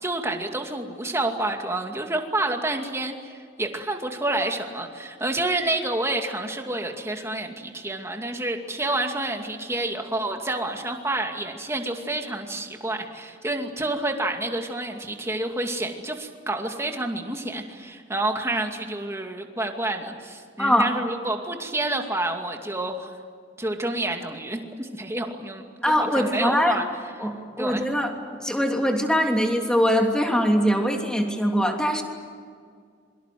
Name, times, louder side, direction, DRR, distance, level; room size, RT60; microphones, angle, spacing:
voice 1, 0.0-23.1 23.6-26.9 27.6-27.9, right 2 dB, 15° right, 3 dB, 2.4 m, -29 dB
voice 2, 20.6-20.9 25.8-26.8 27.2-28.1 28.4-32.0, equal, 5° left, 2 dB, 3.0 m, -22 dB
27.0 x 24.0 x 7.7 m, 2.1 s
head